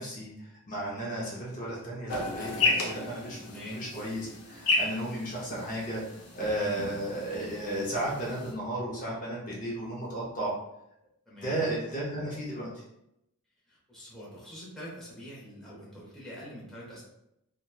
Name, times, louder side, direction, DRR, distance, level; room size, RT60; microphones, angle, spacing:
voice 1, 0.0-10.5 11.4-12.8, right 1 dB, 35° left, -5 dB, 0.6 m, -34 dB
sound 1, 2.1-8.5, left 3 dB, 80° left, 0.5 m, -33 dB
voice 2, 3.4-3.9 11.3-11.6 13.7-17.0, equal, ahead, -8 dB, 0.7 m, -44 dB
2.9 x 2.1 x 2.2 m, 0.81 s
head